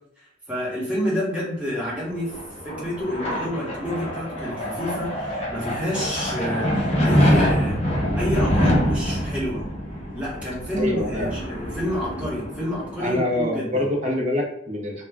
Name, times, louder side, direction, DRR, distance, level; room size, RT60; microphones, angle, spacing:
voice 1, 0.2-2.3 2.6-7.8 8.1-9.7 10.1-13.7, equal, 5° right, -7 dB, 1.0 m, -29 dB
sound 1, 2.0-13.3, equal, 35° left, 0.5 m, -25 dB
voice 2, 10.8-11.3 13.0-15.0, left 1 dB, 35° right, -1 dB, 0.6 m, -25 dB
2.3 x 2.1 x 3.4 m, 0.74 s
head